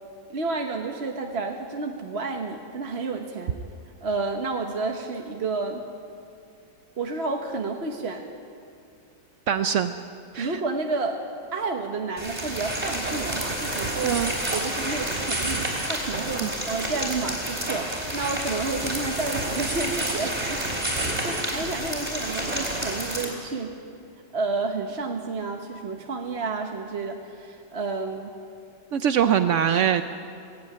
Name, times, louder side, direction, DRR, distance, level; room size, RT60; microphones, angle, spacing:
voice 1, 0.3-3.6 4.0-5.8 7.0-8.3 10.4-11.2 11.5-14.2 14.5-23.8 24.3-28.3, right 3 dB, 40° right, 2 dB, 1.2 m, -30 dB
voice 2, 9.5-9.9 10.3-10.6 14.0-14.3 16.4-16.5 28.9-30.0, right 9 dB, 75° right, 9 dB, 0.6 m, -22 dB
sound 1, 12.2-23.2, right 1 dB, 20° right, 3.9 m, -29 dB
18.5 x 16.0 x 9.4 m, 2.4 s
omnidirectional pair, 2.0 m